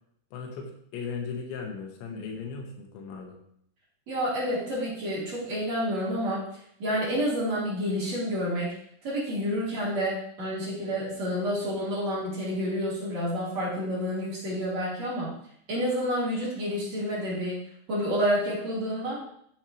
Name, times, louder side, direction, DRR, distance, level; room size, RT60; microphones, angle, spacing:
voice 1, 0.3-3.4, left 5 dB, 85° left, 2 dB, 3.8 m, -37 dB
voice 2, 4.1-6.4 6.8-8.7 9.0-15.3 15.7-17.5 17.9-19.2, equal, 40° right, -8 dB, 4.4 m, -29 dB
13.5 x 7.8 x 3.1 m, 0.67 s
omnidirectional pair, 5.1 m